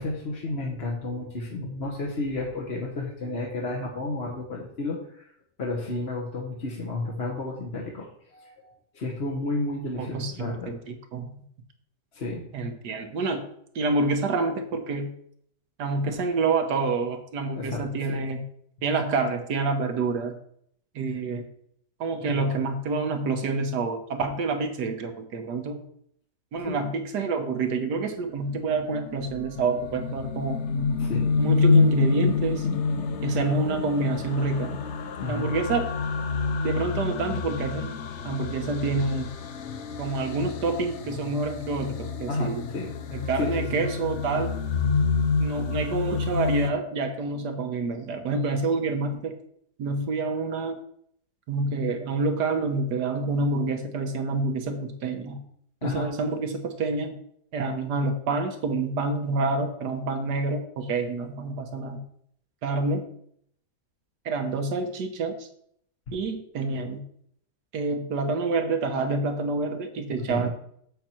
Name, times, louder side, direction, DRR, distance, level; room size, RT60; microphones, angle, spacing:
voice 1, 0.0-5.3 5.6-8.1 8.3-10.7 12.1-12.5 17.5-18.2 26.6-26.9 31.0-31.3 35.2-35.5 42.3-42.9 43.4-43.9 55.8-56.1 70.3-70.5, left 2 dB, 40° left, -1 dB, 1.3 m, -32 dB
voice 2, 10.0-11.3 12.5-13.4 13.7-15.1 15.8-18.4 18.8-20.3 20.9-21.4 22.0-25.8 26.5-30.7 31.4-32.7 33.2-34.8 35.3-35.8 36.6-37.9 38.2-39.3 40.0-42.7 43.1-44.5 45.4-49.4 49.8-50.8 51.5-55.4 55.8-57.2 57.5-62.0 62.6-63.0 64.2-65.5 66.1-67.0 67.7-70.5, right 3 dB, 75° right, 6 dB, 1.6 m, -27 dB
sound 1, 28.7-46.7, left 4 dB, 60° left, 0.8 m, -27 dB
7.6 x 7.3 x 4.4 m, 0.68 s
omnidirectional pair, 1.8 m